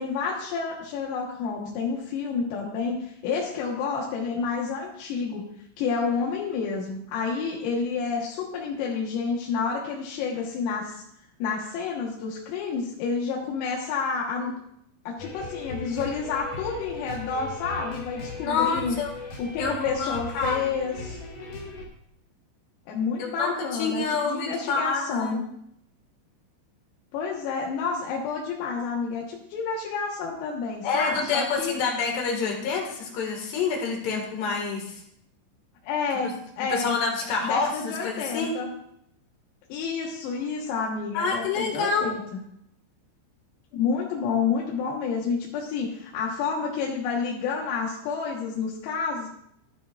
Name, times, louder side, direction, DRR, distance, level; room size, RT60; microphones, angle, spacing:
voice 1, 0.0-5.5 5.8-11.0 11.4-14.6 15.1-19.0 19.4-21.2 22.9-25.4 27.1-31.7 35.8-37.0 37.4-38.7 39.7-42.2 43.7-49.3, left 5 dB, 85° left, -3 dB, 4.2 m, -29 dB
sound 1, 15.2-21.8, left 3 dB, 45° left, 2.1 m, -38 dB
voice 2, 18.4-19.1 19.6-20.6 23.2-25.4 30.8-35.0 36.7-38.6 41.1-42.1, left 4 dB, 60° left, 1 dB, 3.7 m, -27 dB
15.0 x 12.5 x 2.5 m, 0.73 s
omnidirectional pair, 5.9 m